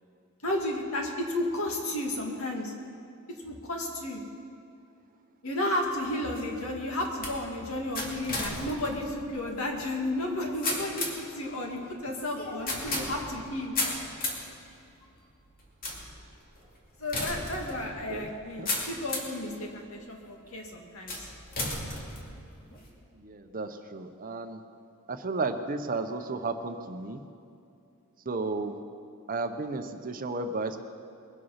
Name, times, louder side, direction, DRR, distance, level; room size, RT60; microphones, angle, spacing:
voice 1, 0.4-2.7 3.4-4.2 5.4-13.8 17.0-21.3, left 1 dB, 75° left, 0 dB, 2.2 m, -33 dB
sound 1, 5.8-19.4 20.0-20.5 21.1-22.9, left 2 dB, 40° left, 2.4 m, -36 dB
voice 2, 23.1-24.6 25.1-27.2 28.2-28.8 29.3-30.8, right 3 dB, 40° right, 8 dB, 0.8 m, -33 dB
22.0 x 8.3 x 5.7 m, 2.5 s
head